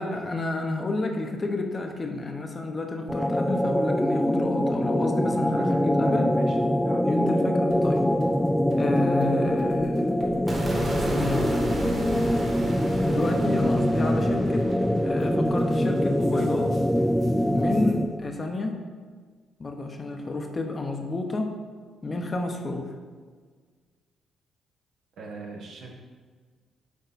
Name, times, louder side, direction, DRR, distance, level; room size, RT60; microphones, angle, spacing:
voice 1, 0.0-6.2 7.0-8.0 8.8-10.1 10.9-11.5 13.0-14.6 15.0-16.7 17.5-18.8 19.6-21.5 22.0-22.9, left 2 dB, 30° left, 3 dB, 0.9 m, -30 dB
sound 1, 3.1-18.2, equal, 5° left, 0.4 m, -24 dB
voice 2, 5.3-6.6 6.8-7.0 25.2-25.9, right 3 dB, 75° right, -1 dB, 1.4 m, -41 dB
sound 2, 7.7-17.9, right 3 dB, 55° right, 1.5 m, -49 dB
sound 3, 10.5-16.7, right 2 dB, 25° right, 1.6 m, -34 dB
8.3 x 4.5 x 4.1 m, 1.5 s
cardioid pair, 90°, 0 cm